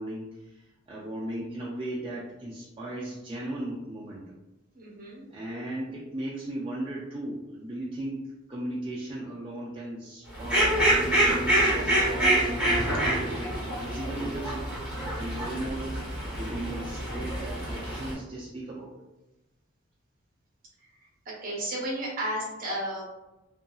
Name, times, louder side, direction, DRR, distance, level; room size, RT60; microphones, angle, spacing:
voice 1, 0.0-4.2 5.3-14.7 15.1-16.0 16.4-19.0, right 1 dB, 25° right, -6 dB, 0.3 m, -36 dB
voice 2, 4.7-5.2 21.3-23.1, right 1 dB, 45° right, -3 dB, 0.8 m, -33 dB
Fowl, 10.3-18.1, right 1 dB, 5° right, 0.9 m, -26 dB
2.7 x 2.6 x 2.3 m, 0.97 s
head